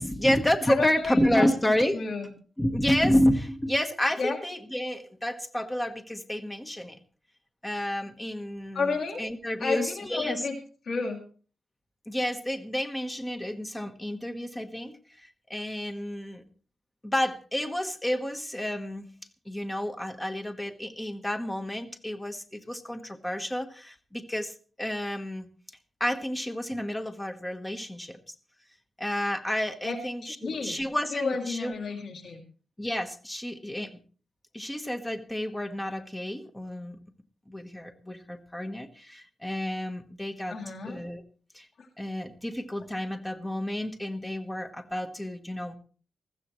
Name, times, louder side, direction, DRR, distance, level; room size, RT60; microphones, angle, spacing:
voice 1, 0.0-2.0 2.6-7.0 7.6-10.5 12.1-16.4 17.0-19.1 19.4-25.5 26.0-28.2 29.0-31.7 32.8-33.9 34.5-37.0 37.5-40.6 40.8-41.2 41.5-41.7 42.0-45.8, left 1 dB, 10° left, 6 dB, 1.2 m, -30 dB
voice 2, 0.7-1.5 1.9-2.3 4.2-4.4 8.7-9.2 9.6-10.6 10.8-11.2 29.8-30.8 31.1-32.4 40.5-41.0, left 4 dB, 60° left, 0 dB, 2.6 m, -31 dB
20.5 x 14.5 x 3.2 m, 0.39 s
wide cardioid pair, 160°, 0 cm